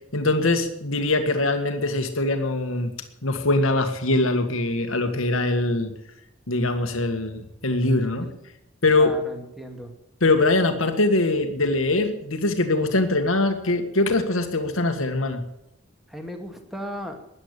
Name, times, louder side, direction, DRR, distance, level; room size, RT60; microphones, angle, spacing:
voice 1, 0.1-2.9 3.2-5.9 6.5-8.3 8.8-9.1 10.2-15.4, left 2 dB, 75° left, 6 dB, 1.7 m, -22 dB
voice 2, 9.0-9.9 16.1-17.2, equal, ahead, 4 dB, 2.3 m, -36 dB
13.5 x 10.5 x 8.2 m, 0.84 s
head